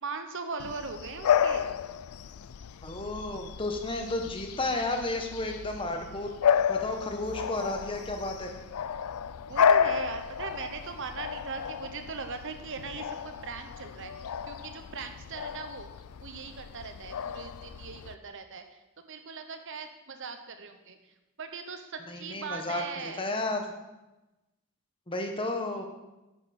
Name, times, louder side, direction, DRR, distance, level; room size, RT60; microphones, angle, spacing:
voice 1, 0.0-1.7 9.5-15.9 16.2-18.6 19.1-21.0 21.4-23.3, right 4 dB, 55° right, 7 dB, 0.9 m, -39 dB
Bark / Bird vocalization bird call bird song, 0.6-18.1, left 7 dB, 75° left, 0.4 m, -31 dB
voice 2, 2.8-8.5 22.1-23.6 25.1-25.8, left 2 dB, 25° left, 4 dB, 1.1 m, -33 dB
9.9 x 9.5 x 4.3 m, 1.0 s
head